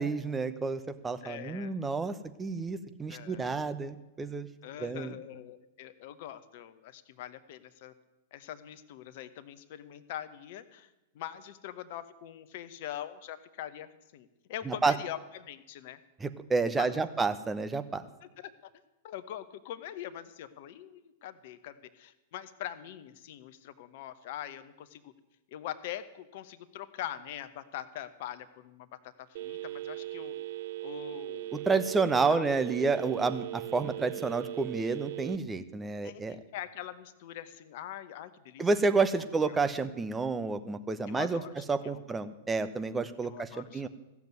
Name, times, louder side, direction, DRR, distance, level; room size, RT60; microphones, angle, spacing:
voice 1, 0.0-4.5 4.8-5.1 14.7-14.9 16.2-18.0 31.5-36.4 38.6-41.4 41.7-43.9, right 4 dB, 15° right, 10 dB, 0.9 m, -30 dB
voice 2, 1.2-1.7 3.1-3.5 4.6-7.9 8.3-10.9 11.1-16.0 16.8-16.9 18.4-18.5 19.0-25.1 25.5-30.3 30.8-31.7 32.3-32.4 36.0-38.7 41.1-42.0 43.2-43.9, left 11 dB, 55° left, 12 dB, 1.0 m, -43 dB
Telephone, 29.4-35.4, right 15 dB, 60° right, 0.4 m, -39 dB
15.0 x 7.2 x 9.4 m, 1.0 s
figure-of-eight pair, 100°, 0 cm